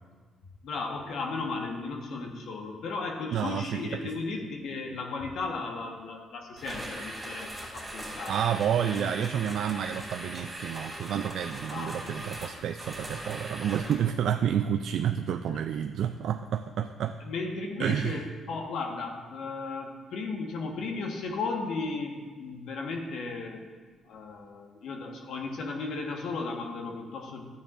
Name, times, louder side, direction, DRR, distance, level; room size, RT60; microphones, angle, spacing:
voice 1, 0.6-8.6 8.8-9.1 11.7-12.3 15.5-15.6 17.2-23.7 24.1-27.5, left 3 dB, 75° left, 2 dB, 1.3 m, -35 dB
voice 2, 3.3-4.1 8.3-17.2 17.8-18.2, right 9 dB, 75° right, 6 dB, 0.3 m, -30 dB
sound 1, 6.6-14.1, right 1 dB, 5° right, 2.5 m, -40 dB
12.0 x 9.2 x 2.5 m, 1.5 s
cardioid pair, 90°, 0 cm